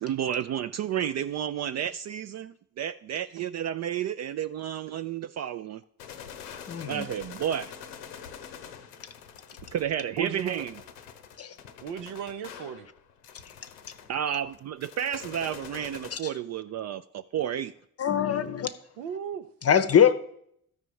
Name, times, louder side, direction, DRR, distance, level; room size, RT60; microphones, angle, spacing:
voice 1, 0.0-5.8 6.9-7.7 9.7-10.7 14.1-17.7, right 10 dB, 40° right, 12 dB, 0.4 m, -31 dB
sound 1, 6.0-16.2, left 8 dB, 80° left, 0.8 m, -45 dB
voice 2, 6.7-7.1 11.4-11.5 16.1-16.2 18.0-18.7 19.6-20.1, left 8 dB, 35° left, 12 dB, 0.7 m, -22 dB
voice 3, 10.2-10.6 11.8-12.9 19.0-19.5, right 7 dB, 80° right, 10 dB, 0.7 m, -35 dB
13.0 x 5.0 x 4.7 m, 0.70 s
hypercardioid pair, 50°, 45 cm